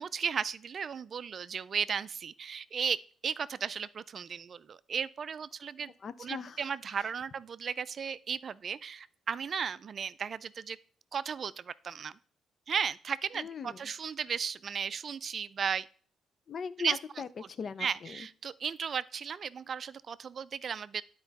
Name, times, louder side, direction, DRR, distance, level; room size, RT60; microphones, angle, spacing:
voice 1, 0.0-5.9 6.2-10.8 11.1-12.1 12.7-15.9 16.8-17.0 17.8-21.0, right 6 dB, 50° right, 17 dB, 0.3 m, -35 dB
voice 2, 6.0-7.1 13.3-13.9 16.5-18.3, left 6 dB, 50° left, 15 dB, 0.5 m, -40 dB
9.5 x 4.5 x 4.0 m, 0.43 s
cardioid pair, 90°, 0 cm